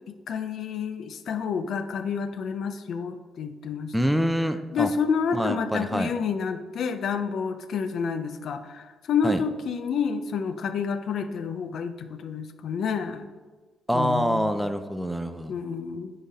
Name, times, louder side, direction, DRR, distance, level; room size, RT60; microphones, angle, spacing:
voice 1, 0.1-4.1 4.7-13.3 13.9-14.6 15.5-16.1, left 6 dB, 65° left, 9 dB, 0.5 m, -29 dB
voice 2, 3.9-4.9 5.3-6.1 9.2-9.4 13.9-15.6, equal, ahead, 8 dB, 0.5 m, -25 dB
9.7 x 3.9 x 4.1 m, 1.4 s
cardioid pair, 90°, 0 cm